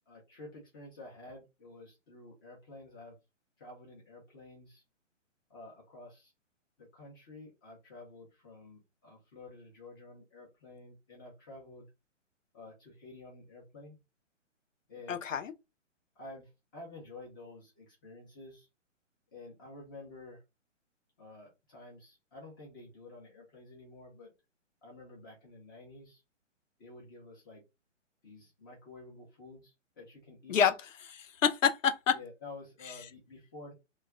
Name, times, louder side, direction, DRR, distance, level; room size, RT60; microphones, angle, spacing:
voice 1, 0.1-3.2 3.6-4.8 5.5-6.3 6.8-11.9 12.5-14.0 14.9-15.2 16.2-18.7 19.3-20.4 21.2-24.3 24.8-26.2 26.8-27.6 28.2-30.6 32.1-33.7, left 2 dB, 20° left, 0.5 m, -50 dB
voice 2, 15.1-15.5 30.5-32.2, left 7 dB, 85° left, 0.6 m, -28 dB
2.3 x 2.1 x 3.5 m
figure-of-eight pair, 135°, 37 cm